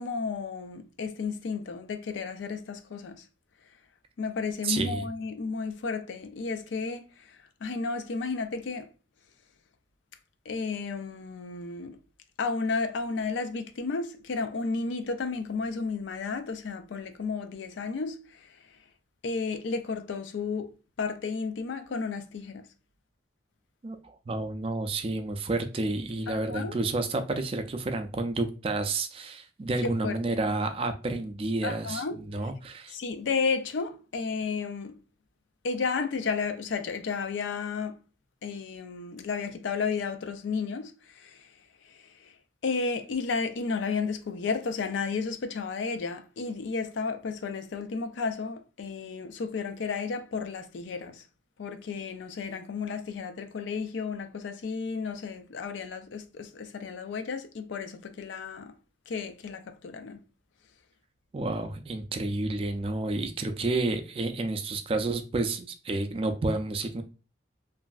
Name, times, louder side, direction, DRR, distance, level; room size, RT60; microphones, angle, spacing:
voice 1, 0.0-3.2 4.2-7.0 7.6-8.9 10.5-12.0 12.4-18.2 19.2-20.7 21.0-22.6 26.3-26.8 29.8-30.2 31.6-32.2 32.9-34.9 35.6-38.0 38.4-40.9 42.6-51.1 51.6-58.7 59.1-60.2, left 4 dB, 85° left, 0.4 m, -32 dB
voice 2, 4.6-5.1 23.8-33.0 61.3-67.0, right 2 dB, 30° right, 0.3 m, -30 dB
3.0 x 2.6 x 2.3 m
head